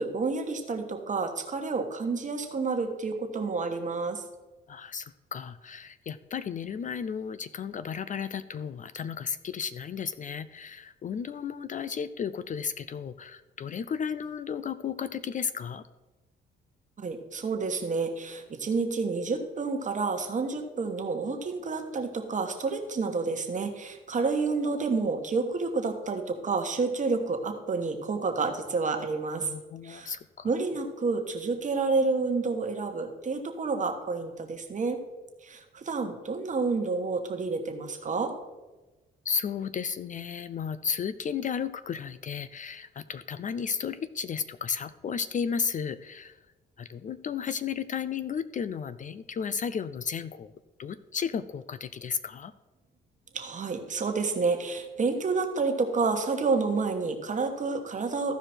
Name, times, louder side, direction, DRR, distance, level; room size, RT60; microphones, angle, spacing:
voice 1, 0.0-4.2 17.0-29.5 29.8-30.1 30.4-35.0 35.4-38.3 53.3-58.3, right 4 dB, 40° right, 5 dB, 1.3 m, -29 dB
voice 2, 4.7-15.9 29.4-30.5 39.2-46.4 46.8-50.5 50.8-52.5, left 7 dB, 40° left, 14 dB, 0.4 m, -34 dB
14.5 x 5.0 x 4.4 m, 1.2 s
cardioid pair, 90°, 20 cm